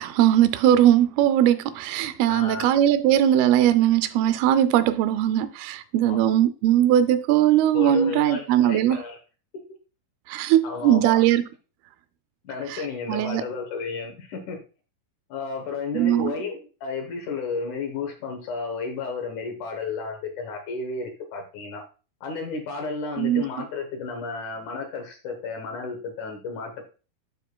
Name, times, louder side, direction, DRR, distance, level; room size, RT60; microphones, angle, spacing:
voice 1, 0.0-9.0 10.3-11.4 12.7-12.8 13.1-13.4 15.9-16.3 23.2-23.4, right 11 dB, 85° right, 2.4 m, -20 dB
voice 2, 2.3-2.7 6.0-6.2 7.7-9.2 9.5-9.6 10.6-11.2 12.4-14.6 15.3-21.8 22.2-26.8, left 4 dB, 65° left, 2.1 m, -32 dB
9.3 x 6.7 x 2.2 m
omnidirectional pair, 4.5 m